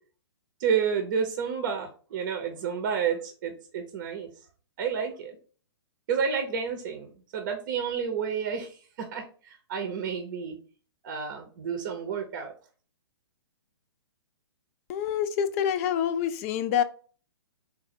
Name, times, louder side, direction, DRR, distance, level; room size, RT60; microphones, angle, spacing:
voice 1, 0.6-4.3 4.8-5.4 6.1-10.6 11.0-12.5, right 6 dB, 45° right, 4 dB, 0.7 m, -30 dB
voice 2, 14.9-16.8, left 9 dB, 35° left, 11 dB, 0.4 m, -26 dB
4.0 x 2.1 x 4.2 m, 0.40 s
figure-of-eight pair, 120°, 14 cm